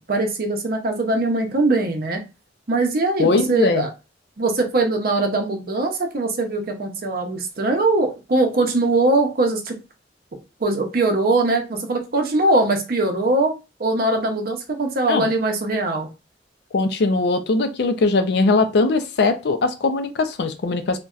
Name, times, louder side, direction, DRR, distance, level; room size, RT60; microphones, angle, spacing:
voice 1, 0.0-2.2 2.7-3.9 4.4-9.8 10.6-13.5 13.8-16.1, right 2 dB, 55° right, 3 dB, 0.6 m, -21 dB
voice 2, 3.2-3.8 15.1-15.3 16.7-21.0, left 3 dB, 60° left, 8 dB, 0.4 m, -20 dB
3.9 x 2.1 x 2.4 m, 0.29 s
head